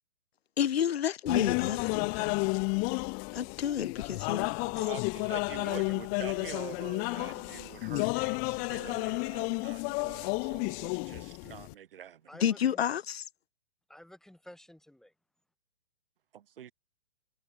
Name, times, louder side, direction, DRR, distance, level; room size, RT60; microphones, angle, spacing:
voice 1, 0.6-2.5 3.3-4.6 12.4-13.2, left 9 dB, 80° left, 0.6 m, -30 dB
sound 1, 1.3-11.7, left 39 dB, 25° left, 0.8 m, -32 dB
voice 2, 4.7-12.2 16.3-16.7, right 10 dB, 60° right, 6.0 m, -46 dB
voice 3, 5.6-5.9 12.3-12.8 13.9-15.1, left 1 dB, ahead, 4.4 m, -51 dB
hypercardioid pair, 125°, 31 cm